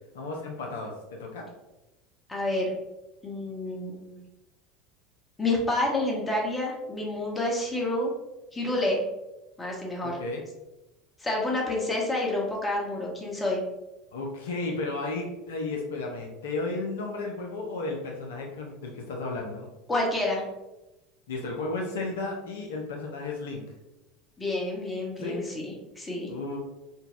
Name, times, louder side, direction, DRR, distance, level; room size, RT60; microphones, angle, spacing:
voice 1, 0.1-1.4 10.0-10.4 14.1-19.7 21.3-23.6 25.2-25.4 26.3-26.6, left 3 dB, 75° left, 0 dB, 0.5 m, -33 dB
voice 2, 2.3-2.7 3.2-4.1 5.4-8.1 8.5-9.0 9.6-10.2 11.2-13.6 19.9-20.4 24.4-26.3, left 2 dB, 20° left, -2 dB, 0.9 m, -29 dB
3.9 x 2.2 x 2.4 m, 0.99 s
hypercardioid pair, 75°, 0 cm